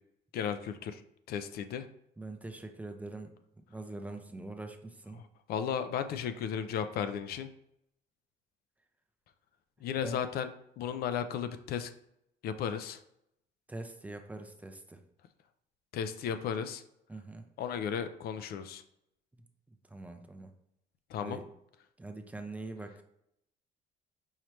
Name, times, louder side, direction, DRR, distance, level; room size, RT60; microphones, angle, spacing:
voice 1, 0.3-1.0 1.3-1.9 5.1-5.2 5.5-7.5 9.8-10.5 10.8-11.9 12.4-13.0 15.9-16.8 17.6-18.8 21.1-21.4, left 8 dB, 65° left, 10 dB, 0.4 m, -34 dB
voice 2, 2.2-3.3 3.7-5.2 10.0-10.2 13.7-15.0 17.1-17.4 19.9-20.5 21.2-21.4 22.0-22.9, right 2 dB, 10° right, 5 dB, 0.5 m, -43 dB
5.6 x 3.1 x 3.0 m, 0.78 s
cardioid pair, 110°, 17 cm